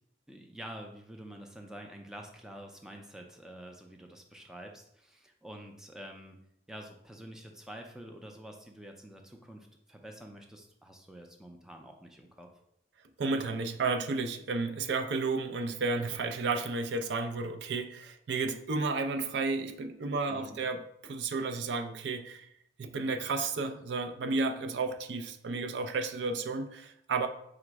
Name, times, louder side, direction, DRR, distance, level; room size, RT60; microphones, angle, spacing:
voice 1, 0.3-6.4 6.7-12.5 20.3-20.6, right 1 dB, 5° right, 2 dB, 0.4 m, -47 dB
voice 2, 13.2-22.5 22.8-27.3, right 3 dB, 80° right, 7 dB, 0.4 m, -32 dB
4.9 x 2.0 x 4.5 m, 0.76 s
head